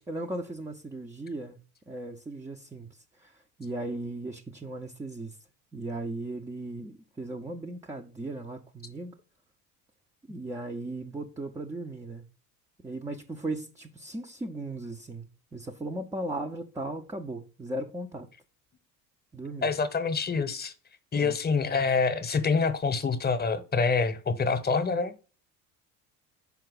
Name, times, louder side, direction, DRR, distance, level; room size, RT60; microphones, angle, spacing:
voice 1, 0.1-1.6 1.9-2.9 3.2-5.4 5.7-9.2 10.3-12.3 12.8-18.3 19.3-19.7 21.1-21.4, right 2 dB, 5° right, 0.3 m, -37 dB
voice 2, 19.6-20.7 21.1-25.1, left 4 dB, 20° left, 0.8 m, -26 dB
5.7 x 4.5 x 3.8 m
hypercardioid pair, 70°, 48 cm